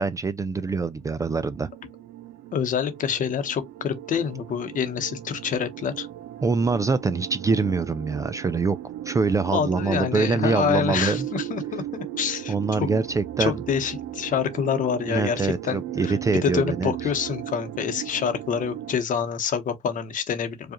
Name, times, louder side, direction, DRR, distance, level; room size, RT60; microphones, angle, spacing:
voice 1, 0.0-1.7 6.4-8.8 9.1-11.2 12.5-13.6 15.1-16.9, right 4 dB, 20° right, 0.3 m, -24 dB
sound 1, 0.9-19.0, right 13 dB, 75° right, 0.5 m, -36 dB
voice 2, 2.5-6.1 9.5-12.9 13.4-16.1 16.4-20.7, left 7 dB, 50° left, 0.9 m, -27 dB
4.8 x 2.4 x 2.9 m
cardioid pair, 110°, 17 cm